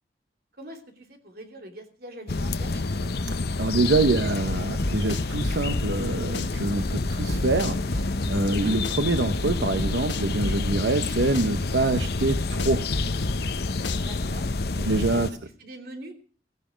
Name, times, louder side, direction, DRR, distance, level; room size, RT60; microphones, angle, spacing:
voice 1, 0.6-3.1 8.4-8.8 14.0-16.1, right 1 dB, 55° right, 4 dB, 2.9 m, -43 dB
sound 1, 2.3-15.3, left 3 dB, 60° left, 0.8 m, -28 dB
voice 2, 3.6-8.0 8.3-12.9 14.8-15.3, right 2 dB, 75° right, 9 dB, 0.9 m, -25 dB
sound 2, 4.5-6.1 6.3-8.6 8.8-11.1 11.3-13.6 13.8-14.5, left 1 dB, 80° left, 1.5 m, -31 dB
16.5 x 15.5 x 5.1 m, 0.41 s
head